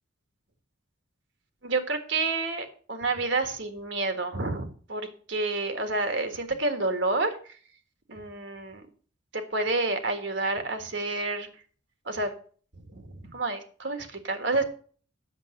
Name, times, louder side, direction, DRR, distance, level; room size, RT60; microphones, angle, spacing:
voice 1, 1.6-7.4 8.1-8.8 9.3-11.5 12.1-12.3 12.9-14.6, right 3 dB, 65° right, 7 dB, 1.7 m, -29 dB
8.3 x 7.1 x 6.5 m, 0.43 s
head